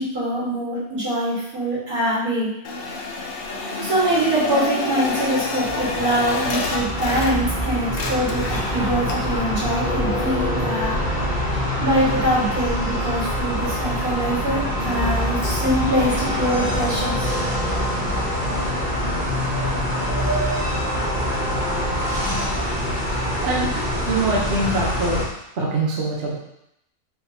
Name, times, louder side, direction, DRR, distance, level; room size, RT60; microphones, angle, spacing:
voice 1, 0.0-2.5 3.7-11.0 11.8-17.3, right 1 dB, 70° right, -8 dB, 2.1 m, -24 dB
sound 1, 2.6-7.6 7.9-9.4, left 3 dB, 70° left, 0.5 m, -28 dB
sound 2, 5.6-25.3, equal, 25° right, 1.2 m, -25 dB
sound 3, 8.5-22.5, left 2 dB, 25° left, 1.1 m, -32 dB
voice 2, 23.4-23.7 24.1-25.2 25.6-26.4, right 2 dB, 50° right, -3 dB, 0.9 m, -23 dB
4.6 x 3.6 x 2.7 m, 0.80 s
omnidirectional pair, 1.6 m